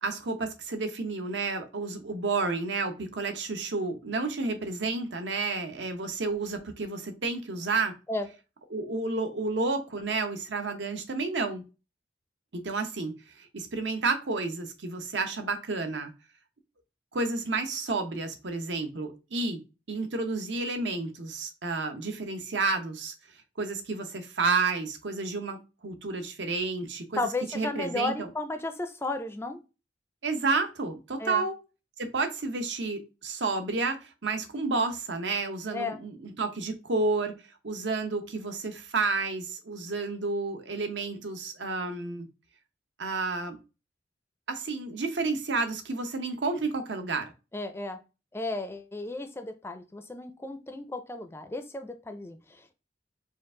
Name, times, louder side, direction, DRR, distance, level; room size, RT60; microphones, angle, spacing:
voice 1, 0.0-7.9 8.7-11.6 12.5-16.1 17.1-19.6 19.9-23.1 23.6-27.3 27.5-28.3 30.2-31.6 32.0-37.4 37.6-42.3 43.0-43.6 44.5-47.3, right 3 dB, 80° right, 0.8 m, -31 dB
voice 2, 27.2-29.6 31.2-31.5 35.7-36.0 47.5-48.0 48.3-52.4, left 2 dB, 15° left, 0.4 m, -34 dB
4.5 x 2.4 x 3.7 m
head